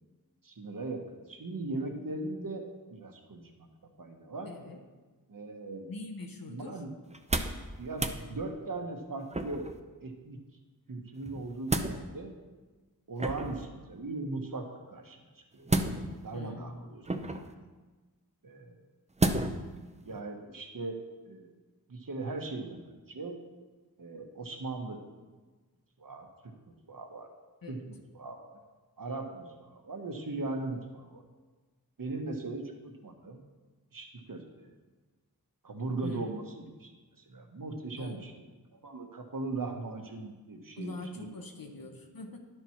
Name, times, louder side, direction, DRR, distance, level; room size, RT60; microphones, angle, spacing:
voice 1, 0.4-3.7 4.0-4.5 5.3-5.9 6.5-6.9 7.8-9.7 10.0-10.4 10.9-12.3 13.1-15.9 16.2-17.0 17.4-17.7 18.4-18.8 20.0-21.0 21.2-21.5 21.9-23.4 24.0-25.0 26.0-26.5 26.9-27.3 27.7-28.6 29.0-31.2 32.0-33.4 33.9-34.7 35.6-36.9 37.3-38.3 38.7-41.3 41.6-41.7, right 3 dB, 60° right, 3 dB, 1.2 m, -39 dB
voice 2, 4.4-4.8 5.9-6.8 16.3-16.7 27.6-27.9 36.0-36.4 38.0-38.4 40.8-42.4, left 3 dB, 65° left, 3 dB, 1.0 m, -43 dB
sound 1, 7.1-7.6 7.9-8.2 9.3-9.8 11.2-12.0 13.2-13.7 15.7-16.3 17.1-17.5 19.2-19.7 20.1-20.2, right 2 dB, 20° right, 0.6 m, -31 dB
11.0 x 4.6 x 5.8 m, 1.3 s
wide cardioid pair, 70°, 37 cm